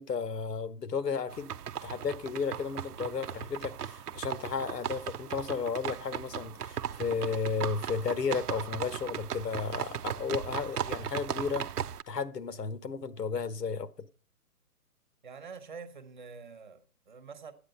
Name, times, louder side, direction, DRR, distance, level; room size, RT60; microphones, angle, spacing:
voice 1, 0.0-11.7 12.1-14.1, left 5 dB, 85° left, 1.3 m, -33 dB
sound 1, 1.3-12.0, right 9 dB, 75° right, 0.7 m, -37 dB
voice 2, 15.2-17.5, right 5 dB, 30° right, 1.0 m, -46 dB
12.5 x 8.7 x 5.5 m
hypercardioid pair, 165°, 47 cm